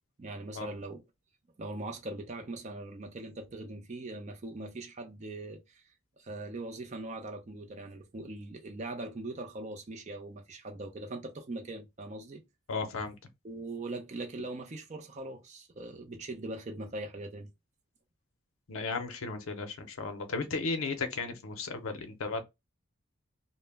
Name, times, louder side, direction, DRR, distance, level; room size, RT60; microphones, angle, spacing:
voice 1, 0.2-1.0 1.6-5.8 6.2-12.4 13.4-17.5, right 2 dB, 35° right, 0.4 m, -41 dB
voice 2, 12.7-13.2 18.7-22.4, left 4 dB, 75° left, 0.5 m, -35 dB
2.1 x 2.0 x 3.3 m
head